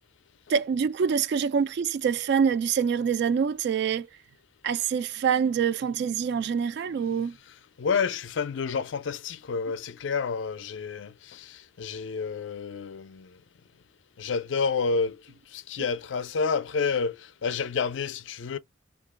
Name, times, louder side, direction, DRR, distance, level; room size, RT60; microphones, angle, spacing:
voice 1, 0.5-4.1 4.6-7.4, right 7 dB, 60° right, 0.3 m, -25 dB
voice 2, 7.8-13.4 14.2-15.2 15.5-18.6, left 5 dB, 70° left, 0.4 m, -29 dB
2.9 x 2.3 x 3.4 m
head